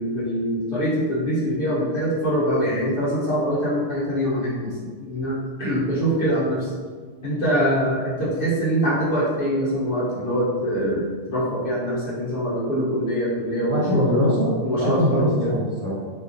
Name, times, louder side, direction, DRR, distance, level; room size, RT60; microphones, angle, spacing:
voice 1, 0.0-4.7 5.0-6.7 7.2-14.1 14.6-15.6, equal, 45° left, -8 dB, 1.3 m, -24 dB
voice 2, 13.6-15.9, equal, 30° right, -6 dB, 1.1 m, -22 dB
5.8 x 2.5 x 2.7 m, 1.5 s
omnidirectional pair, 1.4 m